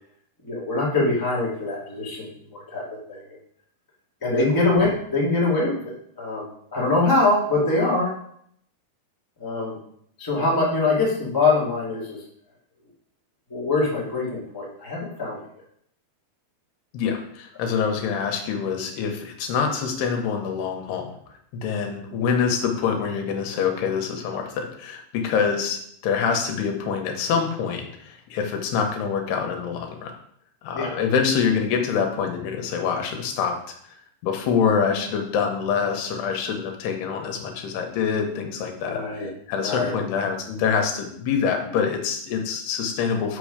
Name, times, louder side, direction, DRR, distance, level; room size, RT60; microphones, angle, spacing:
voice 1, 0.4-3.4 4.2-8.1 9.4-9.8 10.2-12.2 13.5-15.4 25.4-25.5 30.7-30.9 38.9-39.3 39.6-39.9, left 2 dB, 20° left, -5 dB, 0.5 m, -24 dB
voice 2, 16.9-21.1 21.5-30.1 30.6-33.6 33.9-34.0 34.2-43.4, left 6 dB, 80° left, 3 dB, 3.1 m, -25 dB
7.0 x 5.9 x 5.0 m, 0.68 s
omnidirectional pair, 4.7 m